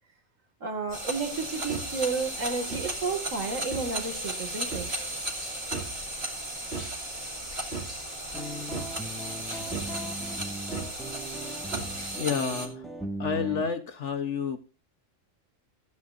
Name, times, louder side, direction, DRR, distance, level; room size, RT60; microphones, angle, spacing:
voice 1, 0.6-4.9, right 4 dB, 80° right, 2.3 m, -32 dB
sound 1, 0.9-12.2, left 1 dB, 25° left, 3.8 m, -43 dB
sound 2, 0.9-12.7, right 2 dB, 50° right, 2.7 m, -35 dB
sound 3, 8.3-13.7, right 1 dB, ahead, 1.7 m, -38 dB
voice 2, 12.2-12.8 13.2-14.6, left 6 dB, 65° left, 1.3 m, -29 dB
16.0 x 9.7 x 2.5 m
omnidirectional pair, 1.3 m